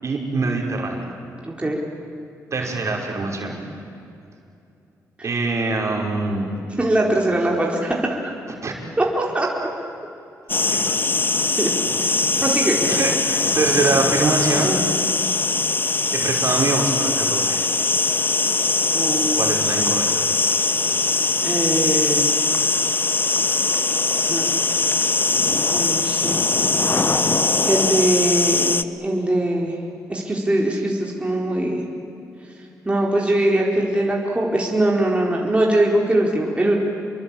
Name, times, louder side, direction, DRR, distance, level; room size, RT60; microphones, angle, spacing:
voice 1, 0.0-1.1 2.5-3.6 5.2-6.5 8.6-8.7 10.7-10.8 12.9-14.8 16.1-17.6 19.3-20.1, right 3 dB, 50° right, 0 dB, 5.4 m, -23 dB
voice 2, 1.4-1.8 5.2-5.3 6.8-8.3 9.0-9.7 11.6-11.7 12.0-12.9 18.9-19.7 21.4-22.3 24.3-24.5 25.7-26.4 27.0-27.4 27.6-29.8 30.1-31.8 32.9-36.8, right 1 dB, 15° right, -2 dB, 4.2 m, -22 dB
sound 1, 10.5-28.8, left 3 dB, 30° left, 1.0 m, -21 dB
27.5 x 22.5 x 8.9 m, 2.7 s
cardioid pair, 70°, 7 cm